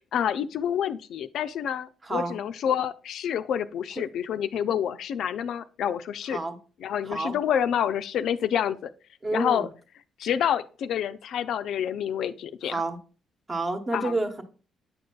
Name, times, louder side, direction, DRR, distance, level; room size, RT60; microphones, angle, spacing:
voice 1, 0.1-6.4 6.8-8.9 9.3-9.7 10.2-12.8 13.9-14.1, left 9 dB, 75° left, 0.4 m, -28 dB
voice 2, 2.0-2.4 6.3-6.6 7.1-7.4 9.2-9.7 12.6-13.0 13.5-14.4, right 2 dB, 30° right, 1.0 m, -29 dB
8.4 x 5.2 x 2.3 m
cardioid pair, 90°, 0 cm